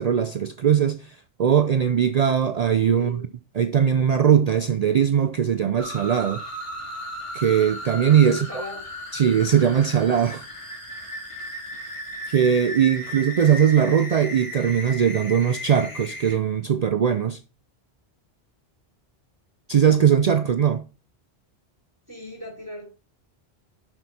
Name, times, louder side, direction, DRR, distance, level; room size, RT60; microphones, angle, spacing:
voice 1, 0.0-3.2 3.6-6.4 7.3-8.5 9.1-10.4 12.3-17.4 19.7-20.8, right 8 dB, 55° right, 0.5 m, -20 dB
voice 2, 2.9-3.3 8.3-9.1 22.1-23.0, left 2 dB, 20° right, 4.0 m, -37 dB
sound 1, 5.8-16.4, equal, 30° left, 2.2 m, -36 dB
7.6 x 5.9 x 4.2 m
omnidirectional pair, 1.1 m